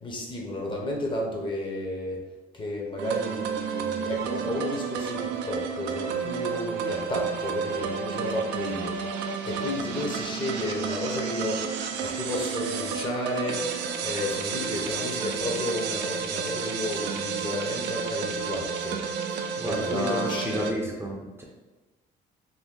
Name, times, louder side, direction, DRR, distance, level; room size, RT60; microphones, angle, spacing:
voice 1, 0.0-2.2 2.5-8.9 9.4-11.7 12.0-13.7 14.0-19.0 19.3-19.4 19.6-20.8, left 1 dB, 30° left, -1 dB, 0.7 m, -32 dB
sound 1, 3.0-20.7, right 6 dB, 85° right, 0.4 m, -31 dB
voice 2, 19.6-21.4, equal, 15° right, -2 dB, 0.5 m, -30 dB
2.7 x 2.6 x 3.6 m, 1.2 s
cardioid pair, 110°, 17 cm